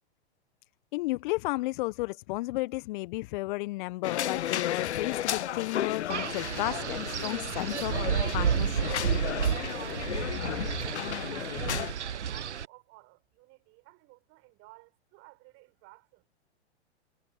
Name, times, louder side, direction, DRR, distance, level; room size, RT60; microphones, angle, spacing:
voice 1, 0.9-8.0 8.3-8.9 10.1-10.2 10.6-10.7, left 21 dB, 45° left, 1.2 m, -33 dB
sound 1, 4.0-11.9, left 11 dB, 75° left, 0.5 m, -34 dB
Wind, 6.1-12.7, right 8 dB, 80° right, 0.9 m, -31 dB
voice 2, 10.1-16.2, right 23 dB, 40° right, 6.6 m, -56 dB
figure-of-eight pair, 110°, 34 cm